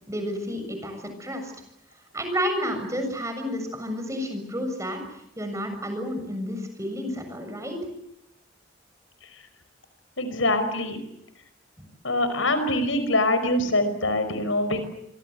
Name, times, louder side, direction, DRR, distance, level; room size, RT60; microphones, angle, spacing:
voice 1, 0.1-1.5 2.1-5.0 5.4-7.8 11.8-11.9, equal, 15° right, 6 dB, 7.1 m, -31 dB
voice 2, 10.2-11.0 12.0-14.8, left 1 dB, 85° left, 10 dB, 5.5 m, -24 dB
27.0 x 25.0 x 8.0 m, 0.78 s
head